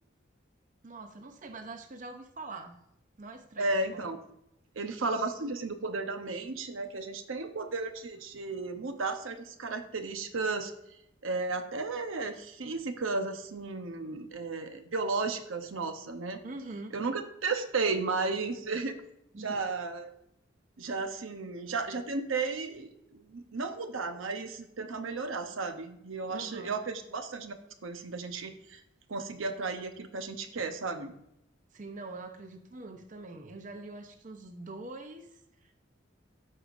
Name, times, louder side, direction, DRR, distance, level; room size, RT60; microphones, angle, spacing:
voice 1, 0.8-2.8 3.2-4.1 16.4-16.9 19.3-19.6 26.3-26.8 31.7-35.7, right 2 dB, 40° right, 6 dB, 0.6 m, -44 dB
voice 2, 3.6-4.2 4.8-10.7 11.2-16.4 16.9-18.9 19.4-20.1 20.8-27.5 27.8-28.8 29.1-31.1, right 3 dB, 85° right, 7 dB, 0.8 m, -34 dB
13.0 x 4.8 x 2.5 m, 0.80 s
head